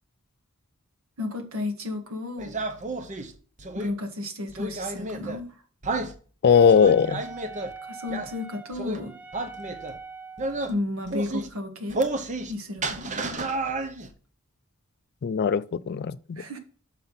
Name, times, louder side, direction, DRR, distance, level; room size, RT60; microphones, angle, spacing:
voice 1, 1.2-2.5 3.7-5.5 7.8-9.2 10.7-12.0 12.5-13.4 16.4-16.6, left 2 dB, 70° right, 1.9 m, -33 dB
sound 1, 2.4-3.9 4.5-5.4 5.8-6.1 6.6-7.7 8.1-8.3 8.7-9.0 9.3-10.0 10.4-10.7 11.0-11.5 11.9-12.5 12.8-14.1, right 2 dB, 35° right, 0.8 m, -31 dB
voice 2, 6.4-7.2 15.2-16.4, left 6 dB, 50° left, 0.4 m, -20 dB
Wind instrument woodwind instrument, 6.5-10.7, right 4 dB, 10° right, 0.6 m, -43 dB
6.5 x 5.7 x 5.8 m
head